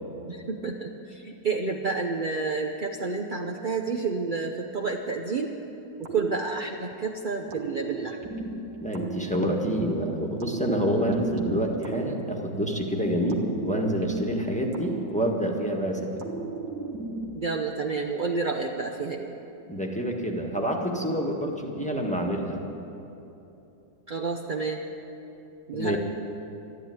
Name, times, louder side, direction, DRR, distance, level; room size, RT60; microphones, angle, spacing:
voice 1, 0.3-5.5 6.0-8.3 17.3-19.3 24.1-24.8 25.7-26.0, right 4 dB, 60° right, 1 dB, 0.5 m, -30 dB
sound 1, 6.0-7.0 7.5-9.9 10.4-12.8 13.3-15.7 16.2-17.7, right 4 dB, 85° right, 2.0 m, -37 dB
voice 2, 8.8-16.4 19.7-22.6 25.7-26.0, equal, 5° left, 0 dB, 1.2 m, -27 dB
13.0 x 12.0 x 9.3 m, 2.9 s
omnidirectional pair, 1.9 m